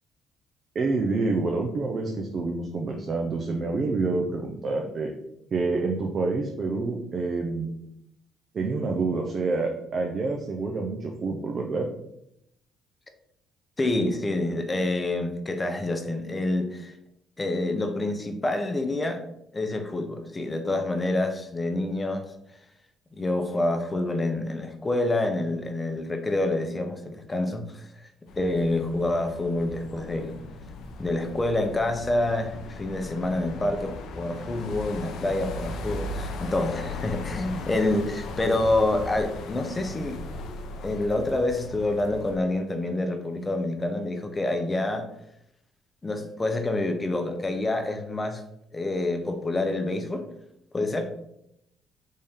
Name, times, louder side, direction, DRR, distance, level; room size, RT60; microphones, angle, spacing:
voice 1, 0.7-5.1 5.5-7.7 8.5-11.9, right 3 dB, 50° right, 1 dB, 0.5 m, -27 dB
voice 2, 13.8-16.9 17.4-19.2 19.5-22.3 23.1-28.1 28.4-30.4 31.0-40.2 40.8-45.1 46.0-48.4 48.7-50.2 50.7-51.1, left 2 dB, 25° left, 6 dB, 0.6 m, -27 dB
sound 1, 28.3-42.4, left 2 dB, 70° left, 0.5 m, -38 dB
3.6 x 2.6 x 3.5 m, 0.78 s
supercardioid pair, 75°, 0 cm